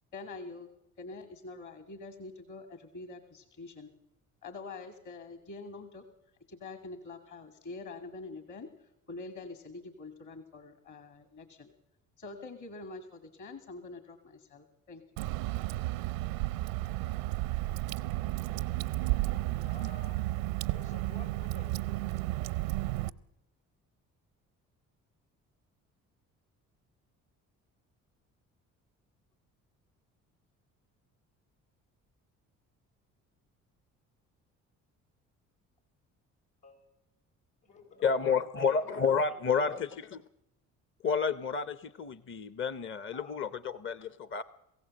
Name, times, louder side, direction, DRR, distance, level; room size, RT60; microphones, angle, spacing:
voice 1, 0.1-0.7 1.0-3.9 4.4-6.0 6.5-11.7 12.2-15.0, left 3 dB, 50° left, 7 dB, 2.3 m, -45 dB
Water / Drip, 15.2-23.1, right 18 dB, 85° right, 0.6 m, -33 dB
voice 2, 19.6-20.4 20.7-21.7 36.6-36.8 37.6-38.1 38.6-39.4 43.1-43.3, left 3 dB, 80° left, 0 dB, 6.5 m, -52 dB
voice 3, 38.0-40.2 41.0-44.4, left 5 dB, 30° left, 14 dB, 0.8 m, -30 dB
22.5 x 15.5 x 7.7 m, 0.87 s
hypercardioid pair, 55°, 38 cm